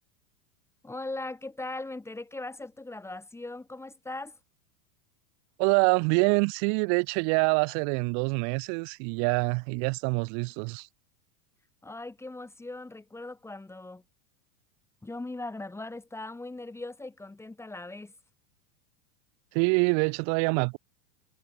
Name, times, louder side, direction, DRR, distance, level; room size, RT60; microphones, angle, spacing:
voice 1, 0.8-4.4 11.8-14.0 15.0-18.1, left 2 dB, 5° left, 3.2 m, -39 dB
voice 2, 5.6-10.9 19.5-20.8, right 40 dB or more, 35° right, 1.0 m, -25 dB
supercardioid pair, 165°, 50 cm